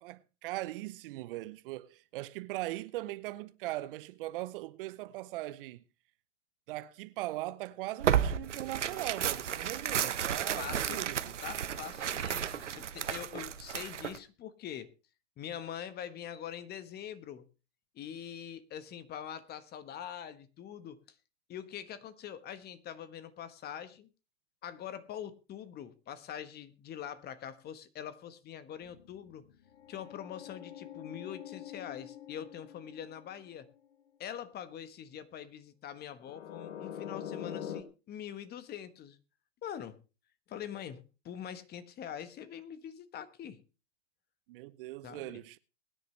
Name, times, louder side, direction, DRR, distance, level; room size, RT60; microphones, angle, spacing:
voice 1, 0.0-5.8 6.7-11.4 44.5-45.6, right 17 dB, 50° right, 0.8 m, -40 dB
Tearing, 8.0-14.2, right 9 dB, 80° right, 1.2 m, -33 dB
voice 2, 10.6-11.0 11.4-14.9 15.4-17.4 17.9-21.0 21.5-24.1 24.6-29.5 29.9-33.7 34.2-39.2 39.6-40.0 40.5-43.6 45.0-45.4, left 9 dB, 25° left, 1.4 m, -44 dB
sound 1, 28.8-33.7 36.2-37.8, left 9 dB, 70° left, 1.8 m, -44 dB
22.0 x 10.0 x 3.3 m
hypercardioid pair, 110°, 35 cm